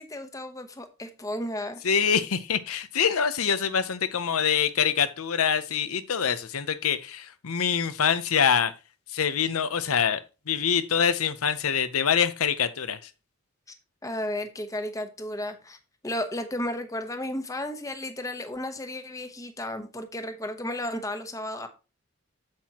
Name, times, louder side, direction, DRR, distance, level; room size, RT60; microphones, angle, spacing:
voice 1, 0.0-1.8 14.0-15.8 16.0-21.7, left 1 dB, 15° left, 1.0 m, -33 dB
voice 2, 1.8-8.7 9.1-10.2 10.5-13.1, left 7 dB, 80° left, 0.7 m, -25 dB
8.7 x 7.6 x 2.9 m
head